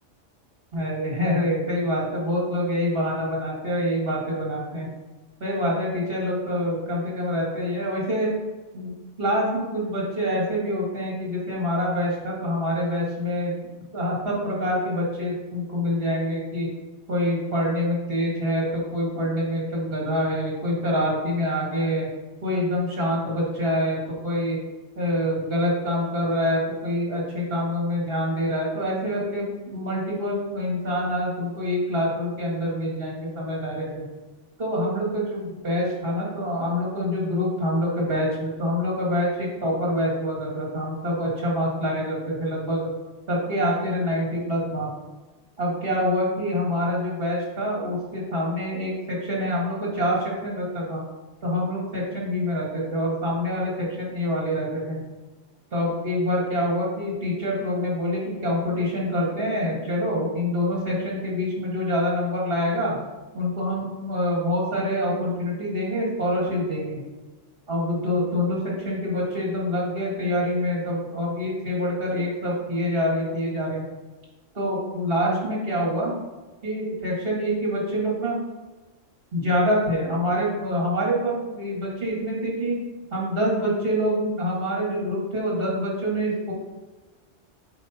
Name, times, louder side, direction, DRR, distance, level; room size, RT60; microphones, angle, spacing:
voice 1, 0.7-4.9 5.4-8.3 8.7-13.6 13.9-16.7 17.1-22.1 22.4-24.6 25.0-34.0 34.6-42.9 43.3-44.9 45.6-51.0 51.4-55.0 55.7-63.0 63.3-67.0 67.7-73.8 74.5-76.1 76.6-78.4 79.3-82.8 83.1-86.5, equal, 50° right, -4 dB, 2.1 m, -26 dB
7.9 x 4.8 x 2.9 m, 1.2 s
omnidirectional pair, 1.3 m